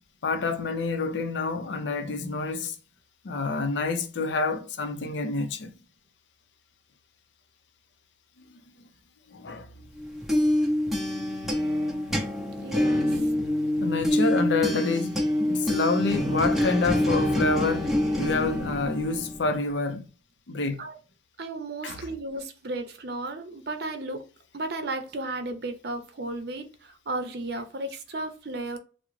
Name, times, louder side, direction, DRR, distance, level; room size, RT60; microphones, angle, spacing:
voice 1, 0.2-2.8 3.2-5.7 9.3-9.7 11.2-11.3 13.7-20.1 20.5-20.8 21.8-22.0, left 3 dB, 70° left, 0.5 m, -28 dB
sound 1, 10.0-19.6, left 1 dB, ahead, 0.6 m, -26 dB
voice 2, 12.6-13.3 20.8-21.0 21.4-24.2 24.5-28.8, right 2 dB, 60° right, 0.6 m, -34 dB
3.6 x 2.0 x 3.0 m
head